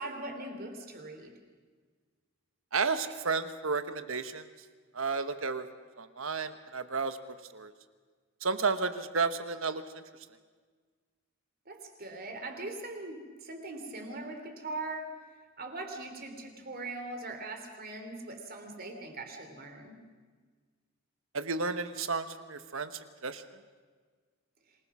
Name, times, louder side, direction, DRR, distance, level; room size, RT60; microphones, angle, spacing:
voice 1, 0.0-1.3 11.6-15.3 15.6-20.0, right 2 dB, 45° right, 4 dB, 3.4 m, -41 dB
voice 2, 2.7-4.4 4.9-5.7 6.0-7.2 7.5-7.7 8.4-10.0 21.3-22.9 23.2-23.4, right 4 dB, 70° right, 10 dB, 1.4 m, -32 dB
27.0 x 19.5 x 6.2 m, 1.5 s
head